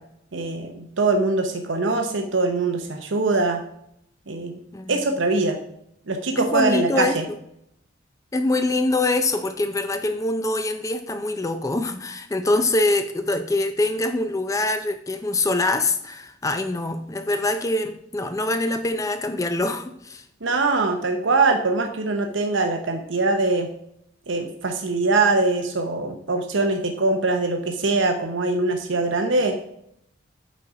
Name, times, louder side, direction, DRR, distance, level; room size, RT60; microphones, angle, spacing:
voice 1, 0.3-3.6 4.3-4.5 4.9-5.6 6.1-7.2 20.4-23.7 24.3-29.6, right 3 dB, 75° right, 0.8 m, -22 dB
voice 2, 6.4-7.2 8.3-20.2, left 2 dB, 15° left, 0.4 m, -24 dB
8.3 x 4.2 x 4.9 m
head